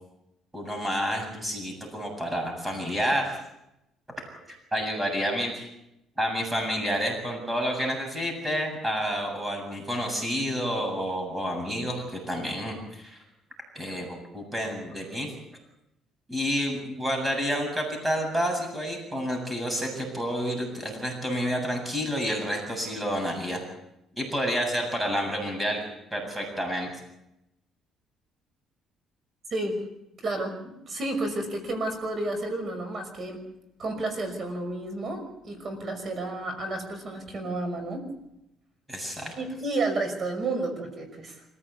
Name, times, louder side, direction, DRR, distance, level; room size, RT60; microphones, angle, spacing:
voice 1, 0.5-3.4 4.3-5.7 6.2-13.2 13.7-15.3 16.3-23.6 24.2-25.8 26.1-26.9 38.9-39.3, equal, 10° right, 3 dB, 7.7 m, -29 dB
voice 2, 30.2-33.4 33.8-38.0 39.4-41.4, right 2 dB, 40° right, 6 dB, 5.8 m, -31 dB
26.5 x 15.5 x 8.5 m, 0.86 s
cardioid pair, 125°, 0 cm